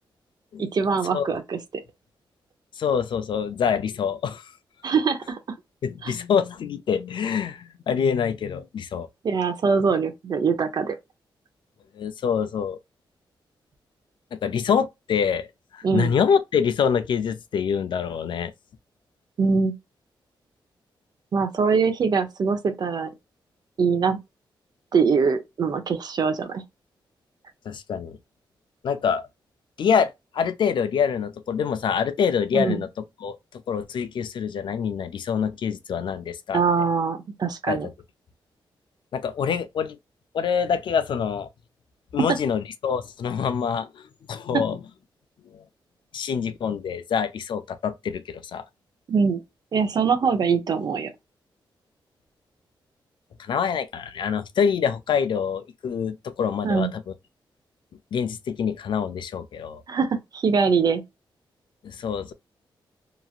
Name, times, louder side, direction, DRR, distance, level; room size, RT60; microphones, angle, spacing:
voice 1, 0.6-1.6 4.8-5.4 6.0-6.1 9.2-11.0 15.8-16.1 19.4-19.7 21.3-23.1 23.8-24.2 24.9-26.6 32.5-32.8 36.5-37.9 44.5-44.6 49.1-49.4 49.7-51.1 56.6-56.9 59.9-61.0, right 5 dB, 50° right, 0.7 m, -23 dB
voice 2, 2.8-4.5 5.8-9.1 11.9-12.8 14.3-15.5 15.7-18.5 27.7-28.2 28.8-29.2 29.8-32.9 33.2-33.4 33.7-36.6 37.7-37.8 39.1-40.0 40.3-41.5 42.1-44.0 44.3-44.8 45.5-45.6 46.1-48.6 53.4-57.0 58.1-59.8 61.8-62.3, left 7 dB, 65° left, 0.5 m, -25 dB
3.0 x 2.6 x 2.4 m
wide cardioid pair, 130°, 9 cm